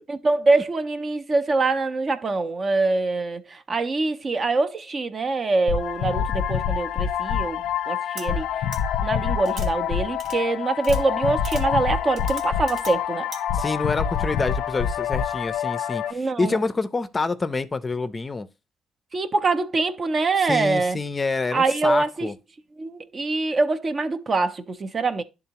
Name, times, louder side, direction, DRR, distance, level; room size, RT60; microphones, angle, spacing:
voice 1, 0.1-8.5 9.0-13.3 16.1-16.6 19.1-21.0 21.5-22.3 22.8-25.2, right 3 dB, 40° right, 0.6 m, -24 dB
sound 1, 5.7-16.1, left 8 dB, 90° left, 0.4 m, -26 dB
sound 2, 8.2-8.3 8.7-8.8 9.5-9.7 10.2-10.4 10.8-11.0 11.4-11.6 12.2-12.9 13.3-13.4, right 3 dB, 75° right, 1.4 m, -38 dB
voice 2, 13.5-18.5 20.5-22.3, left 3 dB, 25° left, 0.5 m, -27 dB
10.5 x 3.7 x 2.8 m
cardioid pair, 90°, 0 cm